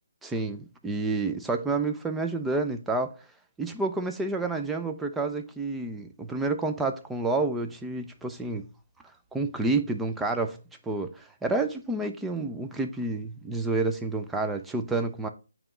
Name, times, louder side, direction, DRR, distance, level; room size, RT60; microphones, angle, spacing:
voice 1, 0.2-3.2 3.6-8.7 9.3-10.6 10.8-15.3, right 3 dB, 5° right, 0.3 m, -29 dB
8.9 x 3.0 x 3.7 m
hypercardioid pair, 175°, 0 cm